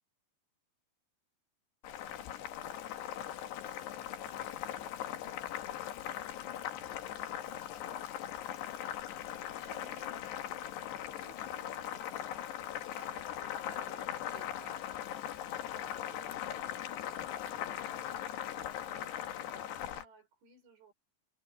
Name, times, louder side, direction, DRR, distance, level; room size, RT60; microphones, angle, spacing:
Boiling, 1.8-20.0, left 11 dB, 80° left, 3.8 m, -40 dB
voice 1, 9.5-10.1 12.8-14.8, right 8 dB, 60° right, 4.9 m, -57 dB
voice 2, 11.2-12.6 15.9-20.9, right 4 dB, 90° right, 8.6 m, -60 dB
omnidirectional pair, 4.7 m